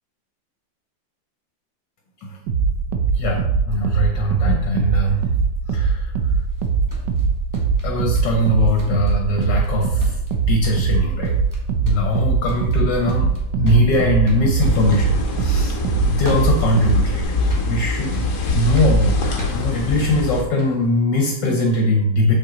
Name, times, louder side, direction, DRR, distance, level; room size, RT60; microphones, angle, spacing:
sound 1, 2.5-17.2, right 5 dB, 70° right, 1.3 m, -21 dB
voice 1, 3.1-5.3 5.7-6.3 7.8-10.2 10.5-11.4 11.8-17.2 17.7-18.3 18.5-22.3, left 1 dB, 70° left, 2 dB, 1.5 m, -21 dB
sound 2, 6.5-8.5 8.8-9.7 10.0-10.4 10.6-11.0 11.2-11.6 11.9-20.9, left 1 dB, 10° right, 1.3 m, -37 dB
sound 3, 14.6-20.4, left 2 dB, 50° left, 1.2 m, -23 dB
6.6 x 5.8 x 3.9 m, 0.86 s
omnidirectional pair, 2.1 m